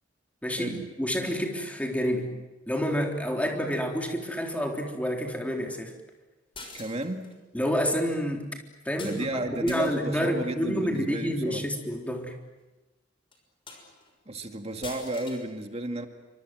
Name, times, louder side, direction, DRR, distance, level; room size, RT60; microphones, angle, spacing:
voice 1, 0.4-2.3 2.7-5.9 7.5-8.5 8.9-12.3, equal, 10° left, 2 dB, 3.8 m, -28 dB
sound 1, 6.5-7.3 9.0-9.2 9.7-10.1 10.9-11.2 12.0-12.1 12.6-12.7 13.3-13.4 13.7-14.1 14.8-15.4, left 3 dB, 30° left, 6.2 m, -44 dB
voice 2, 6.7-7.3 9.0-11.7 14.3-16.1, right 1 dB, 35° right, 5 dB, 2.1 m, -33 dB
29.0 x 25.0 x 7.7 m, 1.1 s
head